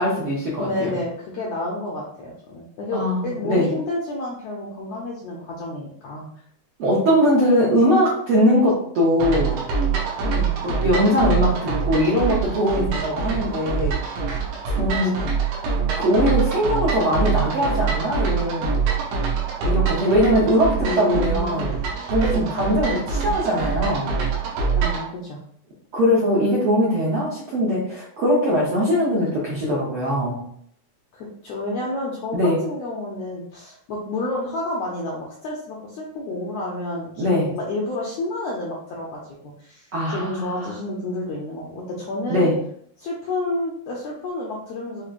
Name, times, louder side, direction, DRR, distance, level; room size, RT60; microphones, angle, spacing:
voice 1, 0.0-0.9 2.9-3.7 6.8-9.6 10.6-13.9 14.6-15.1 16.0-18.8 19.6-21.7 22.1-24.1 25.9-30.4 32.3-32.6 37.2-37.5 39.9-40.7 42.3-42.5, equal, 70° right, -5 dB, 1.3 m, -21 dB
voice 2, 0.6-6.3 10.2-10.5 14.9-15.3 20.8-21.6 22.3-22.5 24.7-25.4 31.1-42.5 43.0-45.0, left 2 dB, 80° left, -3 dB, 1.5 m, -30 dB
sound 1, 9.2-25.1, right 5 dB, 85° right, 2.7 m, -24 dB
6.6 x 2.9 x 2.5 m, 0.66 s
omnidirectional pair, 3.8 m